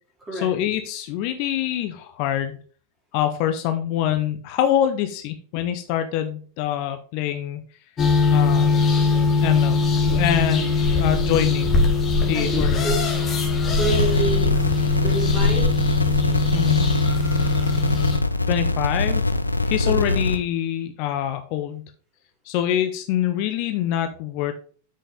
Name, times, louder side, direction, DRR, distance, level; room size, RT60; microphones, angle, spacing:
voice 1, 0.3-2.6 3.1-7.6 8.3-8.7 9.4-11.7 12.3-13.0 16.5-16.9 18.5-19.2 19.6-21.8 22.4-24.5, left 11 dB, 45° left, 8 dB, 0.7 m, -25 dB
sound 1, 8.0-18.2, left 4 dB, 25° left, 1.8 m, -21 dB
voice 2, 12.3-12.9 13.7-14.5 15.0-15.7 19.8-20.1, right 2 dB, 15° right, -2 dB, 3.5 m, -28 dB
sound 2, 13.9-20.4, left 2 dB, 85° left, 0.5 m, -23 dB
7.7 x 6.6 x 3.5 m, 0.43 s
figure-of-eight pair, 90°, 0 cm